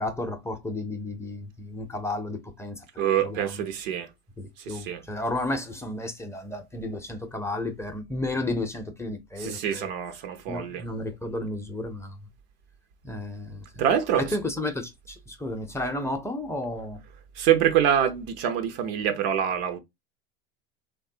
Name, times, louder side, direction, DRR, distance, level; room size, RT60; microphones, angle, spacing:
voice 1, 0.0-2.8 3.2-3.5 4.4-9.8 10.5-12.1 13.0-13.6 14.3-14.9 15.3-17.0, left 2 dB, 10° left, 0.6 m, -32 dB
voice 2, 3.0-4.1 4.7-5.0 9.4-10.8 13.8-14.4 17.4-19.8, right 9 dB, 65° right, 0.7 m, -25 dB
3.1 x 2.3 x 2.6 m
hypercardioid pair, 100°, 31 cm